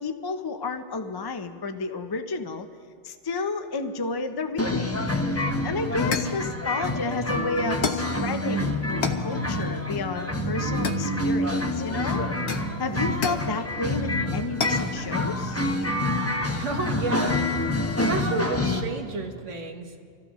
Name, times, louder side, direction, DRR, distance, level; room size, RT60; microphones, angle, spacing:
voice 1, 0.0-2.7 3.0-5.0 5.6-12.2 12.8-15.6, left 3 dB, 35° left, 7 dB, 0.4 m, -31 dB
sound 1, 4.6-18.8, left 1 dB, 15° left, 0.9 m, -27 dB
sound 2, 5.4-5.5 6.1-6.4 7.8-8.2 9.0-9.3 10.8-11.5 12.5-13.5 14.6-14.9, left 5 dB, 65° left, 1.2 m, -30 dB
voice 2, 16.5-17.7 18.1-20.1, right 3 dB, 85° right, 3 dB, 1.6 m, -32 dB
26.0 x 14.5 x 3.0 m, 2.2 s
omnidirectional pair, 1.2 m